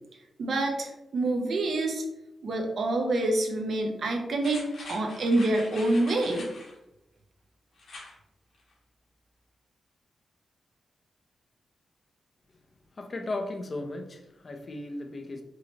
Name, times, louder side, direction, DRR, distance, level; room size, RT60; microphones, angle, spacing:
voice 1, 0.4-2.0 2.4-4.6 4.9-6.5, right 2 dB, 60° right, 2 dB, 0.8 m, -27 dB
sound 1, 4.4-6.7 7.8-8.1 8.5-8.6, left 2 dB, 70° left, 1.3 m, -44 dB
voice 2, 12.9-15.4, left 2 dB, 35° left, 4 dB, 0.6 m, -36 dB
4.9 x 3.1 x 2.9 m, 0.91 s
wide cardioid pair, 130°, 0 cm